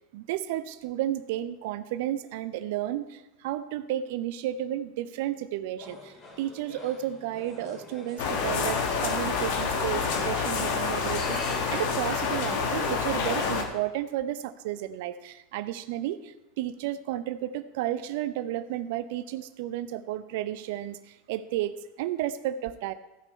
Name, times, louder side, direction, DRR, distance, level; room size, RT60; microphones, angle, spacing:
voice 1, 0.1-22.9, right 12 dB, 60° right, 13 dB, 0.5 m, -32 dB
sound 1, 5.8-13.0, left 2 dB, 40° left, 3.0 m, -45 dB
sound 2, 8.2-13.6, left 5 dB, 60° left, 1.4 m, -28 dB
14.5 x 5.9 x 4.3 m, 0.99 s
hypercardioid pair, 85°, 0 cm